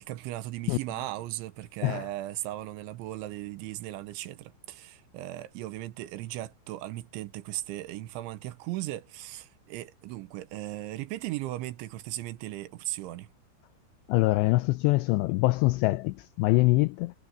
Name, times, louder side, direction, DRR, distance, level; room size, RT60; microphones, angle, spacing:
voice 1, 0.0-13.3, right 15 dB, 85° right, 3.3 m, -37 dB
voice 2, 14.1-17.1, left 21 dB, 90° left, 2.4 m, -24 dB
omnidirectional pair, 5.5 m